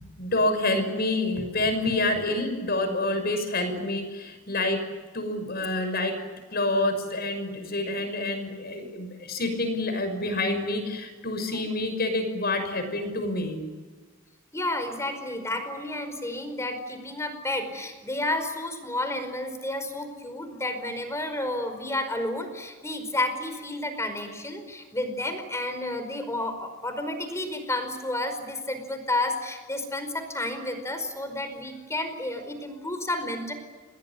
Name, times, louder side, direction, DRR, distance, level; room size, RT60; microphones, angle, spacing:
voice 1, 0.2-6.2 6.5-13.6, left 2 dB, 50° left, 8 dB, 6.1 m, -28 dB
voice 2, 14.5-33.5, left 1 dB, 15° left, 8 dB, 5.0 m, -31 dB
28.0 x 20.5 x 9.9 m, 1.4 s
head